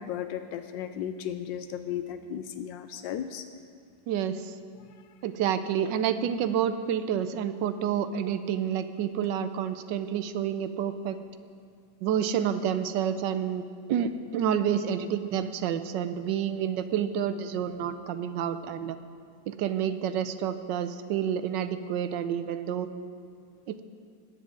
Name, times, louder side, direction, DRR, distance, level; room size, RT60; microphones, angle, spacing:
voice 1, 0.0-3.4, left 9 dB, 85° left, 9 dB, 1.3 m, -35 dB
voice 2, 4.1-4.6 5.2-11.2 12.0-19.0 19.5-22.9 23.7-23.8, right 9 dB, 80° right, 11 dB, 1.3 m, -29 dB
20.0 x 9.6 x 3.7 m, 2.3 s
omnidirectional pair, 2.0 m